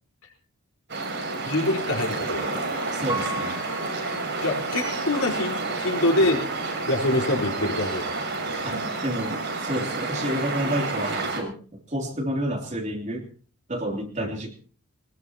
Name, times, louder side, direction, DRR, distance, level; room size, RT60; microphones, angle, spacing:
sound 1, 0.9-11.4, right 3 dB, 50° right, 6.3 m, -30 dB
voice 1, 1.4-2.7 4.4-6.4 6.9-8.2 14.2-14.3, left 1 dB, 70° left, 1 dB, 4.7 m, -25 dB
voice 2, 2.9-3.6 8.6-13.3 13.7-14.6, equal, 30° right, 2 dB, 3.1 m, -30 dB
Piano, 3.1-5.1 5.6-5.7, right 1 dB, 15° right, 0.9 m, -36 dB
21.5 x 20.0 x 2.9 m, 0.41 s
head